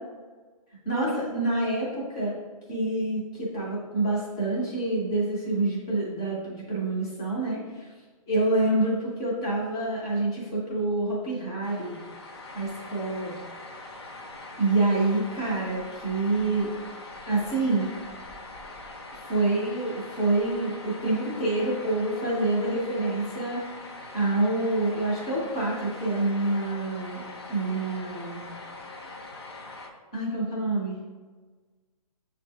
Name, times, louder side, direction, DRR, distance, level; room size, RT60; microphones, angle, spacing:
voice 1, 0.9-2.3 2.7-7.9 8.3-12.0 12.5-13.3 14.6-16.7 17.3-18.0 19.3-23.6 24.1-27.2 27.5-28.5 30.1-31.0, right 2 dB, 10° left, -5 dB, 0.3 m, -27 dB
sound 1, 11.6-29.9, left 2 dB, 45° left, 0.7 m, -42 dB
6.5 x 2.5 x 3.2 m, 1.4 s
hypercardioid pair, 175°, 19 cm